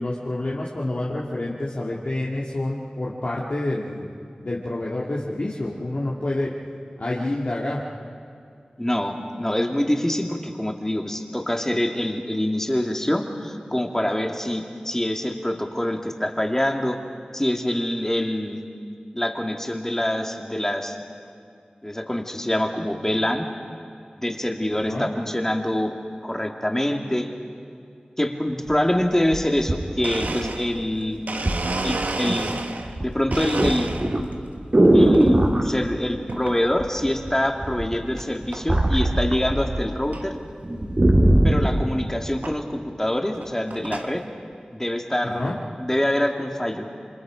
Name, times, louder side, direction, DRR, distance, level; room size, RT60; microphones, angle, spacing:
voice 1, 0.0-4.1 4.4-6.5 7.0-7.8 24.7-25.1 45.2-45.5, left 1 dB, 65° left, -5 dB, 2.3 m, -28 dB
voice 2, 8.8-17.0 17.3-18.7 19.1-21.0 21.8-23.4 24.2-26.0 26.2-27.3 28.2-31.2 31.8-32.6 33.0-33.9 34.9-40.3 41.4-44.2 44.7-45.5 45.8-46.9, left 1 dB, 15° left, 3 dB, 2.2 m, -25 dB
sound 1, 28.7-28.8 29.3-30.8 31.5-31.7 32.0-32.5 32.8-35.7 36.8-37.3 37.6-39.9 40.2-40.3 40.6-41.8 42.4-42.5, right 1 dB, 45° right, 2.7 m, -19 dB
Domestic sounds home sounds, 30.0-33.0 33.3-34.3 34.8-35.3 36.3-36.6 37.2-37.3 38.2-38.3 38.5-38.9 39.3-39.4 39.6-39.7 40.1-40.2 41.5-41.6 42.4-42.6 43.2-44.2, right 2 dB, 85° right, 1.1 m, -31 dB
28.5 x 25.5 x 5.1 m, 2.4 s
wide cardioid pair, 50°, 3 cm